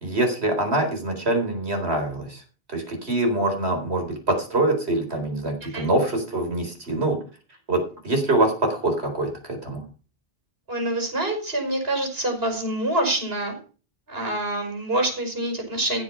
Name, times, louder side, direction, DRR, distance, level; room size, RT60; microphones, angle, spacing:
voice 1, 0.0-2.4 2.7-7.2 7.7-9.8, right 2 dB, 85° right, 4 dB, 4.4 m, -24 dB
voice 2, 10.7-13.5 14.1-16.0, right 1 dB, 65° right, 4 dB, 5.6 m, -26 dB
16.5 x 7.5 x 5.8 m, 0.37 s
omnidirectional pair, 1.1 m